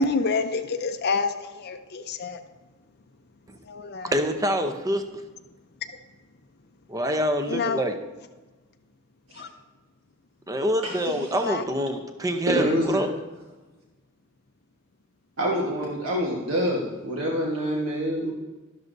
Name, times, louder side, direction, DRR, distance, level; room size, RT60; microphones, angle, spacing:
voice 1, 0.0-2.4 3.6-4.2 7.5-7.9 9.3-9.5 11.0-11.6, left 4 dB, 50° left, 7 dB, 0.6 m, -28 dB
voice 2, 4.0-5.0 6.9-7.9 10.5-13.1, equal, 15° right, 6 dB, 0.7 m, -26 dB
voice 3, 12.5-13.0 15.4-18.3, equal, 75° right, -2 dB, 1.4 m, -26 dB
12.5 x 12.0 x 2.7 m, 1.2 s
head